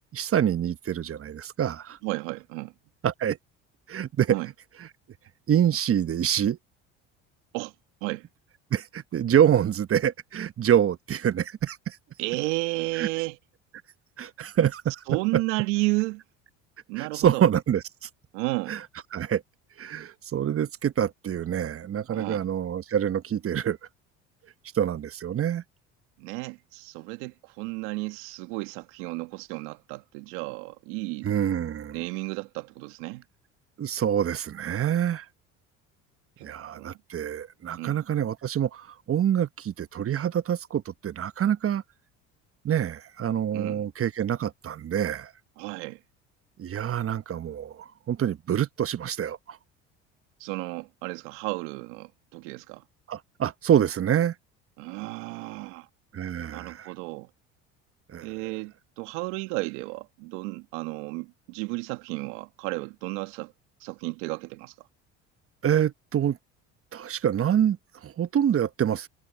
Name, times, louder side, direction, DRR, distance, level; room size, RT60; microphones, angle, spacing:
voice 1, 0.1-2.0 3.0-3.4 3.9-4.4 4.8-4.9 5.5-6.6 8.7-12.0 12.9-13.1 14.2-14.9 15.3-15.4 17.0-18.1 18.7-18.8 19.1-19.4 19.8-23.8 24.7-25.6 31.2-32.0 33.8-35.3 36.4-41.8 42.6-45.3 46.6-49.6 53.1-54.3 56.1-56.9 58.1-58.3 65.6-66.4 66.9-69.1, right 9 dB, 40° right, 1.1 m, -26 dB
voice 2, 2.0-2.7 4.3-4.5 7.5-7.7 8.0-8.3 12.2-13.4 15.1-16.2 16.9-17.4 18.3-18.8 22.1-22.4 26.2-31.3 31.9-33.2 36.4-36.9 37.8-38.0 43.5-43.8 45.6-46.0 50.4-52.8 54.8-55.9 56.5-57.3 58.2-63.5 63.8-64.9, right 25 dB, 80° right, 1.8 m, -33 dB
hypercardioid pair, 70°, 36 cm